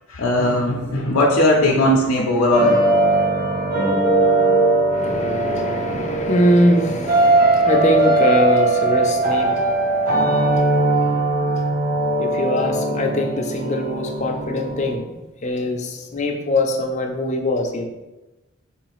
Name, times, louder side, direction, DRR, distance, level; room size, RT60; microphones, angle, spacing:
voice 1, 0.1-2.8, left 1 dB, 80° left, -1 dB, 0.6 m, -18 dB
sound 1, 2.5-14.9, right 2 dB, 45° right, 0.8 m, -19 dB
voice 2, 4.9-17.9, left 1 dB, 35° left, 2 dB, 0.5 m, -23 dB
3.2 x 3.1 x 4.8 m, 1.1 s
head